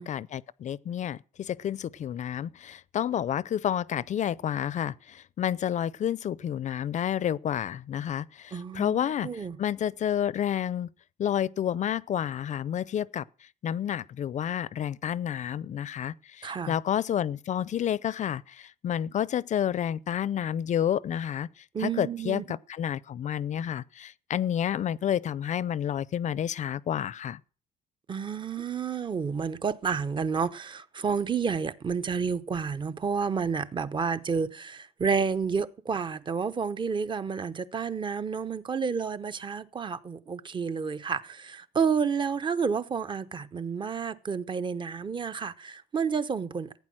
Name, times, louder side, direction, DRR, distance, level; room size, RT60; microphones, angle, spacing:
voice 1, 0.0-9.3 9.6-10.9 11.2-13.2 13.6-27.4, left 10 dB, 45° left, 0.6 m, -30 dB
voice 2, 8.5-9.6 16.4-16.7 21.7-22.4 28.1-46.7, right 6 dB, 30° right, 0.9 m, -30 dB
15.5 x 9.4 x 6.2 m
cardioid pair, 110°, 17 cm